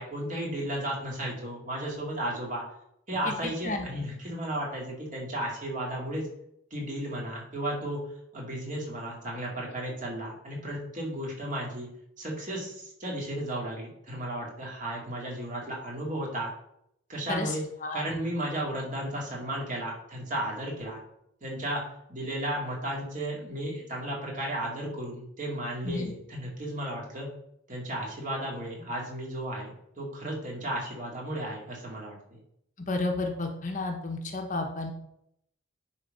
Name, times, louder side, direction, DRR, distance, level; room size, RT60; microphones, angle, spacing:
voice 1, 0.0-2.6 3.1-6.3 6.7-8.0 8.3-11.9 12.2-16.5 17.1-17.6 17.9-21.0 21.4-21.8 22.1-27.3 27.7-32.4, right 1 dB, 40° right, -3 dB, 2.4 m, -34 dB
voice 2, 3.4-3.9 17.3-18.2 25.8-26.1 32.9-34.9, left 2 dB, 40° left, 3 dB, 1.0 m, -32 dB
10.0 x 3.8 x 5.4 m, 0.75 s
head